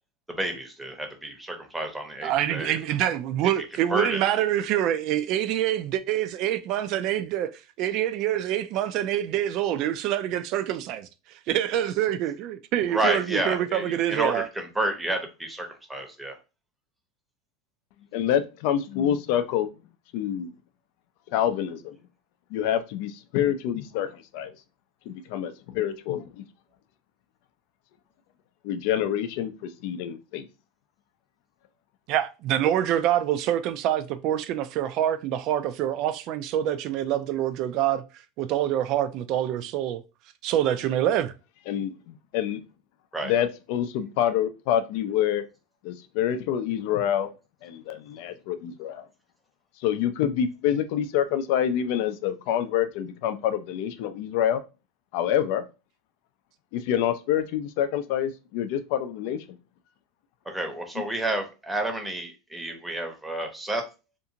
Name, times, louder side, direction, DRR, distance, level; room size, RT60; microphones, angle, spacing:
voice 1, 0.3-2.8 3.9-4.2 12.9-16.4 43.1-43.3 60.5-63.8, right 1 dB, 5° right, 0.7 m, -30 dB
voice 2, 2.2-7.5 7.8-11.1 11.5-14.5 32.1-38.0 38.4-40.0 40.4-41.3, right 11 dB, 55° right, 0.3 m, -26 dB
voice 3, 18.1-19.7 20.1-20.5 21.3-22.0 22.5-24.5 25.1-26.4 28.6-30.4 41.7-42.6 43.2-45.4 45.8-47.3 47.6-49.1 49.8-54.6 55.1-55.6 56.7-59.4, left 10 dB, 65° left, 0.4 m, -27 dB
2.5 x 2.4 x 2.8 m
supercardioid pair, 120°, 0 cm